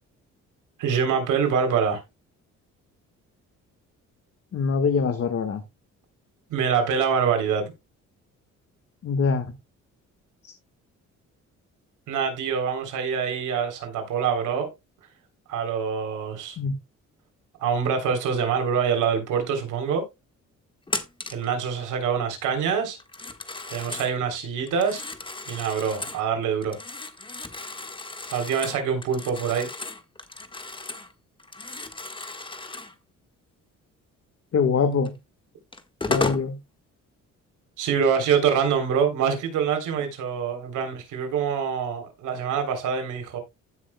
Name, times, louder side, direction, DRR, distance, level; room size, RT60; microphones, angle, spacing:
voice 1, 0.8-2.0 6.5-7.7 12.1-14.7 15.5-16.6 17.6-20.0 21.3-23.0 23.7-25.0 25.5-26.8 28.3-29.7 37.8-43.4, right 7 dB, 85° right, 3.4 m, -25 dB
voice 2, 4.5-5.6 9.0-9.4 16.6-16.7 34.5-35.1 36.1-36.6, left 5 dB, 50° left, 1.4 m, -23 dB
Telephone, 20.9-21.5 23.0-24.1 24.7-26.2 26.6-31.1 31.4-32.9 35.0-35.1 35.7-36.5, left 3 dB, 15° left, 1.5 m, -34 dB
16.0 x 6.4 x 2.2 m
cardioid pair, 90°, 30 cm